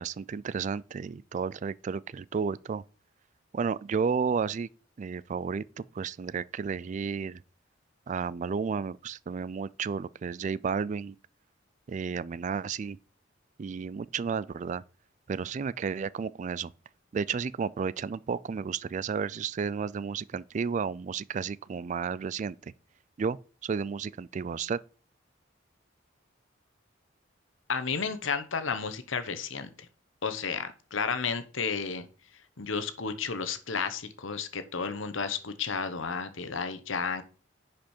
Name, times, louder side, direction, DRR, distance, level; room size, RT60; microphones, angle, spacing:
voice 1, 0.0-2.8 3.5-4.7 5.0-7.4 8.1-11.2 11.9-13.0 13.6-14.8 15.3-16.7 17.1-22.7 23.2-23.4 23.6-24.8, right 6 dB, 40° right, 0.3 m, -32 dB
voice 2, 27.7-29.7 30.2-32.1 32.6-37.2, left 5 dB, 80° left, 1.0 m, -32 dB
10.5 x 5.0 x 4.4 m
head